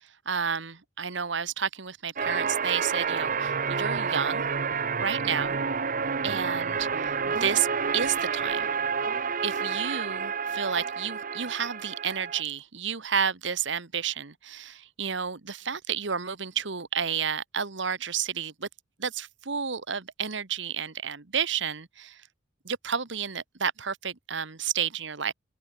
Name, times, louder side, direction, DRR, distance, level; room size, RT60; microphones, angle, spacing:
voice 1, 0.2-4.4 5.0-5.6 6.2-7.7 7.9-8.7 9.4-18.7 19.0-22.2 22.6-25.3, right 7 dB, 70° right, 1.4 m, -31 dB
sound 1, 2.2-12.4, right 5 dB, 45° right, 1.0 m, -29 dB
head